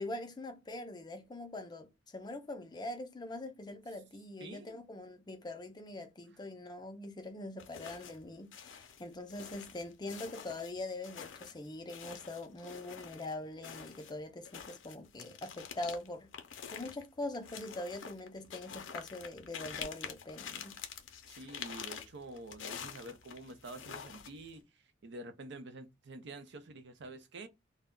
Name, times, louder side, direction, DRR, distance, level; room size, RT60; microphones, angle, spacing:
voice 1, 0.0-16.3 16.7-20.8, left 2 dB, 20° left, 0.4 m, -43 dB
voice 2, 4.4-4.8 21.3-24.6 25.0-27.5, right 2 dB, 65° right, 0.5 m, -48 dB
sound 1, 7.6-8.3 8.5-13.3 13.6-24.6, left 7 dB, 80° left, 0.5 m, -47 dB
2.2 x 2.0 x 3.6 m
head